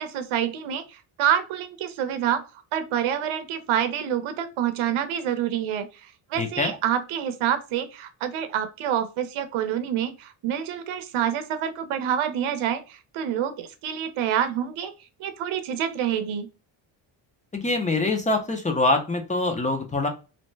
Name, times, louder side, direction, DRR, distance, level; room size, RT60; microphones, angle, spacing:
voice 1, 0.0-2.4 2.7-14.9 15.2-16.5, right 9 dB, 80° right, 10 dB, 0.7 m, -27 dB
voice 2, 6.4-6.7 17.5-20.1, left 2 dB, 15° left, 4 dB, 0.5 m, -24 dB
2.7 x 2.1 x 3.2 m, 0.30 s
cardioid pair, 110°, 48 cm